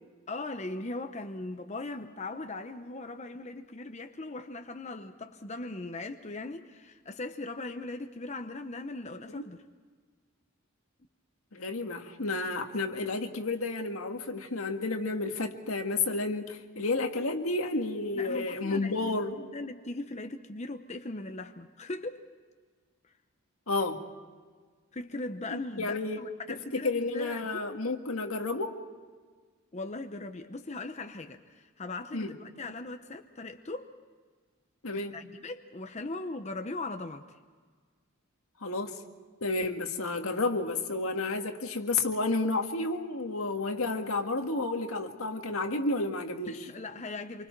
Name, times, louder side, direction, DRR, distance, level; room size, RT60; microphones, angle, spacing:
voice 1, 0.3-9.6 18.1-22.2 24.9-27.7 29.7-33.9 35.1-37.3 46.5-47.5, left 2 dB, 35° left, 6 dB, 0.9 m, -39 dB
voice 2, 11.5-19.4 23.7-24.0 25.5-26.2 26.7-28.8 32.1-32.3 34.8-35.1 38.6-39.0 39.4-46.6, left 3 dB, 85° left, 4 dB, 1.9 m, -31 dB
27.5 x 24.5 x 4.6 m, 1.5 s
head